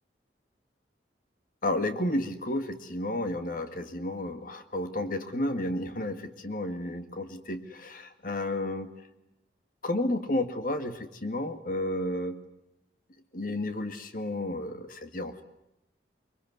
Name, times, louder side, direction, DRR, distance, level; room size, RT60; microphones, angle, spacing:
voice 1, 1.6-8.9 9.8-12.4 13.3-15.4, left 1 dB, 50° left, 8 dB, 2.0 m, -32 dB
23.5 x 23.5 x 9.5 m, 0.89 s
head